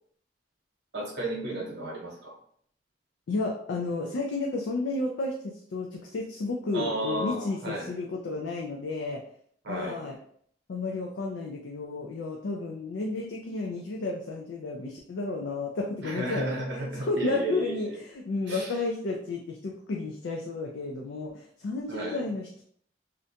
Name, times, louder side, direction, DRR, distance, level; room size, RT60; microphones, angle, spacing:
voice 1, 0.9-2.3 6.7-7.9 9.6-10.0 16.0-17.9 18.5-18.7 21.9-22.2, right 2 dB, 70° right, -2 dB, 0.9 m, -33 dB
voice 2, 3.3-9.2 9.7-10.2 10.7-22.6, left 3 dB, 75° left, 0 dB, 0.4 m, -32 dB
2.5 x 2.2 x 2.7 m, 0.62 s
head